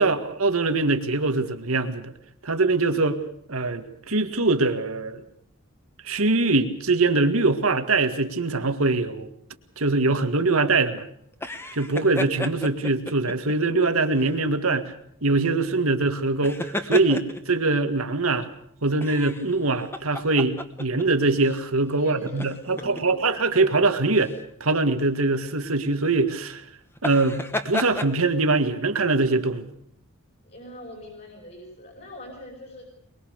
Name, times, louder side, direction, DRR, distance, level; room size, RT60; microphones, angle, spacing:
voice 1, 0.0-2.1 2.4-3.2 3.5-5.2 6.0-9.3 9.8-11.1 11.7-14.9 15.2-18.5 18.8-24.3 24.6-26.6 27.0-29.7, right 3 dB, 85° right, 7 dB, 2.0 m, -23 dB
sound 1, 11.3-13.5 14.1-14.4 16.3-17.6 19.0-21.0 21.4-21.6 22.2-23.0 24.1-24.4 26.9-28.1, left 1 dB, 10° left, 1.3 m, -32 dB
voice 2, 21.9-22.4 22.7-23.4 30.4-32.9, left 1 dB, 50° left, -2 dB, 5.8 m, -42 dB
23.0 x 22.5 x 6.7 m, 0.70 s
head